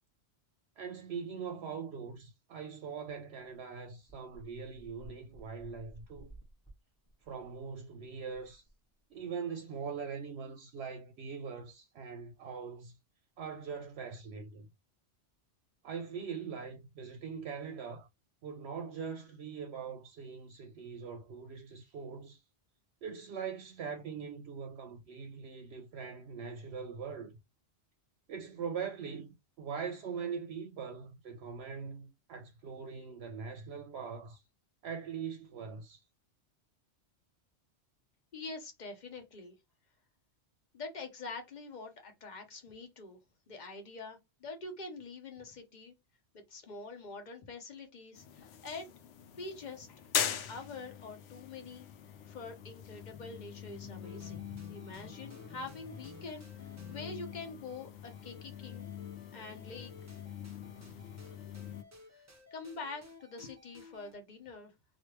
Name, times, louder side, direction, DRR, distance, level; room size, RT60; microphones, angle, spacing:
voice 1, 0.8-6.3 7.3-8.6 9.1-13.0 13.4-14.7 15.8-18.1 18.4-22.4 23.0-27.3 28.3-29.3 29.6-34.4 34.8-36.0, right 6 dB, 70° right, 0.8 m, -42 dB
sound 1, 4.1-9.3, right 1 dB, 15° left, 1.1 m, -56 dB
voice 2, 38.3-39.6 40.7-43.2 43.5-45.9 46.3-48.9 49.3-49.9 50.2-51.9 52.2-56.5 56.9-58.9 59.3-59.9 61.2-61.3 62.1-62.2 62.5-64.7, left 3 dB, 45° left, 0.9 m, -45 dB
sound 2, 48.1-61.8, left 9 dB, 70° left, 0.8 m, -42 dB
sound 3, 54.0-64.1, left 2 dB, 20° right, 0.5 m, -55 dB
3.2 x 2.4 x 3.0 m
omnidirectional pair, 1.2 m